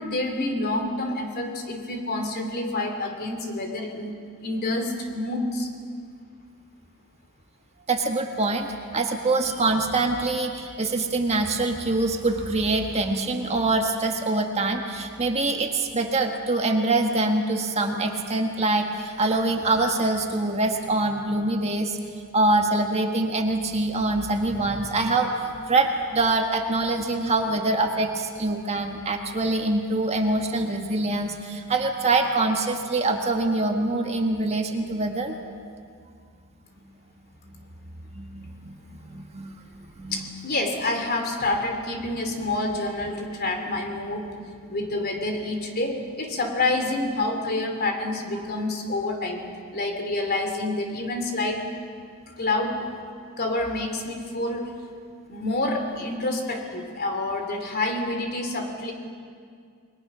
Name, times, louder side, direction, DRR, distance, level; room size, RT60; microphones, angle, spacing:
voice 1, 0.0-4.1 4.4-5.7 40.1-44.3 44.7-49.4 49.7-51.6 52.4-52.9 53.4-54.7 55.3-58.9, left 2 dB, 45° left, 4 dB, 3.0 m, -28 dB
voice 2, 7.9-8.7 8.9-22.0 22.3-25.3 25.7-35.3 37.5-37.6 38.1-39.5 39.9-40.3 48.3-48.4, right 2 dB, 30° right, 3 dB, 1.6 m, -24 dB
29.5 x 21.5 x 6.2 m, 2.2 s
head